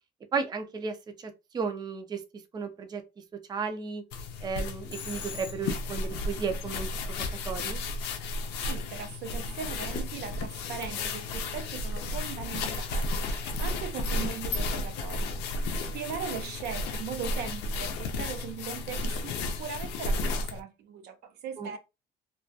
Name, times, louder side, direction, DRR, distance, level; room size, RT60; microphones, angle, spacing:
voice 1, 0.3-2.2 2.5-3.0 3.5-4.0 4.4-7.8 21.6-21.8, right 5 dB, 25° right, 0.4 m, -34 dB
sound 1, 4.1-20.6, left 2 dB, 90° left, 0.5 m, -33 dB
Telephone, 4.9-6.0, left 6 dB, 30° left, 0.6 m, -43 dB
voice 2, 8.6-15.7 15.9-21.8, right 8 dB, 75° right, 0.6 m, -39 dB
2.3 x 2.2 x 2.5 m
cardioid pair, 110°, 17 cm